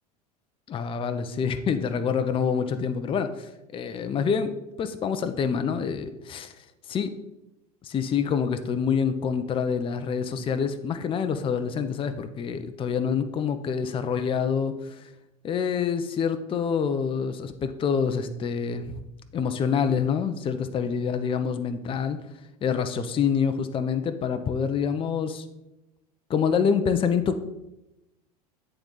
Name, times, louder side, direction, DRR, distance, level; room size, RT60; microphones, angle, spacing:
voice 1, 0.7-4.5 4.8-6.5 6.9-7.1 7.8-15.1 15.4-19.0 19.3-22.2 22.6-25.5 26.3-27.4, left 6 dB, 25° left, 9 dB, 0.5 m, -26 dB
8.9 x 3.9 x 3.8 m, 0.94 s
hypercardioid pair, 85°, 20 cm